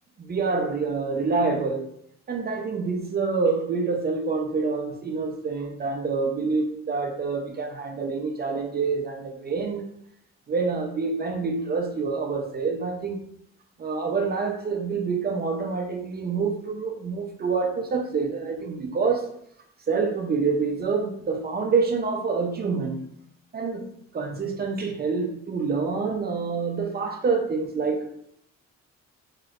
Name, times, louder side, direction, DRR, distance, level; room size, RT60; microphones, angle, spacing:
voice 1, 0.2-1.8 2.3-9.8 10.5-13.2 13.8-19.3 19.9-23.0 23.5-28.1, right 4 dB, 30° right, 3 dB, 0.6 m, -27 dB
3.1 x 2.8 x 2.5 m, 0.71 s
cardioid pair, 90°, 30 cm